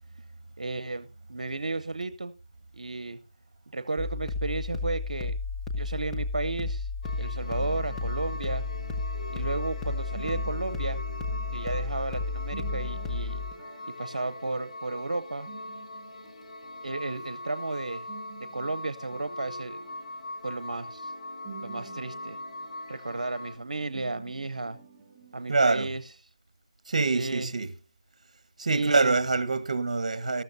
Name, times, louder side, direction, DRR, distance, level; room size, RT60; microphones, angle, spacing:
voice 1, 0.6-2.3 2.7-3.2 3.7-5.4 5.8-6.9 7.2-8.6 9.3-11.0 11.5-13.4 14.0-15.5 16.8-18.1 18.5-19.8 20.4-21.1 21.6-22.4 22.9-24.8 25.3-26.0 27.1-27.5 28.7-29.2, right 3 dB, 90° right, 0.7 m, -33 dB
sound 1, 4.0-13.5, left 3 dB, 10° left, 1.2 m, -33 dB
sound 2, 7.0-23.6, left 2 dB, 80° left, 2.6 m, -42 dB
sound 3, 7.1-25.9, right 4 dB, 35° right, 3.0 m, -48 dB
voice 2, 25.5-25.9 26.9-27.7 28.6-30.4, right 3 dB, 65° right, 1.2 m, -25 dB
13.5 x 13.0 x 2.7 m
figure-of-eight pair, 160°, 4 cm